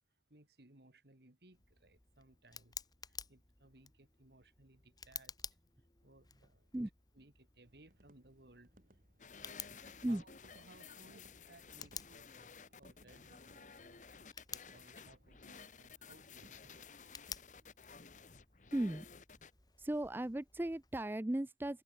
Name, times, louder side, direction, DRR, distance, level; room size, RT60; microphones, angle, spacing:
voice 1, 0.3-2.8 3.1-5.4 6.0-6.7 7.1-8.7 9.2-14.0 14.5-17.2, right 2 dB, 65° right, 2.3 m, -63 dB
Tick, 1.5-21.2, left 7 dB, 20° left, 1.7 m, -54 dB
sound 1, 7.6-17.8, right 1 dB, 50° right, 3.1 m, -69 dB
sound 2, 9.2-19.5, left 5 dB, 45° left, 1.3 m, -55 dB
voice 2, 18.7-19.1 19.8-21.8, right 1 dB, 10° right, 0.4 m, -36 dB
head